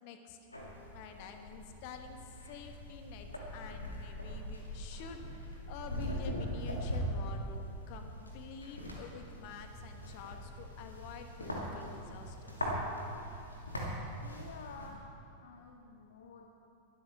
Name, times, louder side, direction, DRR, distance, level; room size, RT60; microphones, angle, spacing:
voice 1, 0.0-0.4 0.9-12.6, left 6 dB, 45° left, 6 dB, 1.3 m, -49 dB
sound 1, 0.5-14.9, equal, 80° left, 2.5 m, -41 dB
voice 2, 14.2-16.5, left 4 dB, 60° left, 3 dB, 1.0 m, -51 dB
21.0 x 13.0 x 3.6 m, 2.7 s
figure-of-eight pair, 90°, 0 cm